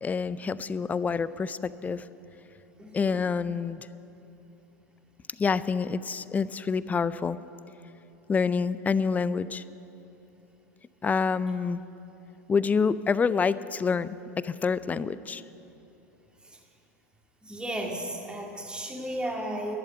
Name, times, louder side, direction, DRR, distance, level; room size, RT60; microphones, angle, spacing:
voice 1, 0.0-2.0 2.9-3.8 5.4-7.4 8.3-9.6 11.0-11.8 12.5-14.1 14.4-15.4, left 5 dB, 15° left, 17 dB, 0.4 m, -27 dB
voice 2, 2.8-3.2 16.4-16.6 17.4-19.8, right 1 dB, 10° right, 0 dB, 2.2 m, -34 dB
12.0 x 11.0 x 9.0 m, 3.0 s
figure-of-eight pair, 85°, 9 cm